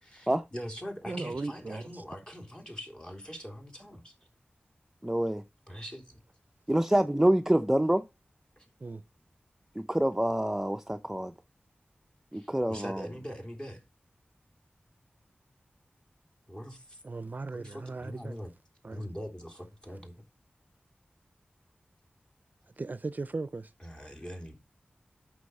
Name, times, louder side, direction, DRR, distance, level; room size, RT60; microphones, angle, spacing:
voice 1, 0.0-4.1 5.7-6.2 8.6-8.7 12.3-13.8 16.5-17.0 17.5-18.5 18.9-20.2 23.8-24.6, equal, 25° left, 3.3 m, -42 dB
voice 2, 1.1-2.0 8.8-9.0 17.0-18.4 18.8-19.1 22.8-23.7, right 3 dB, 50° right, 0.5 m, -37 dB
voice 3, 5.0-5.4 6.7-8.0 9.8-11.3 12.3-13.1, right 1 dB, 10° right, 0.6 m, -26 dB
8.2 x 6.3 x 5.4 m
wide cardioid pair, 60°, 4 cm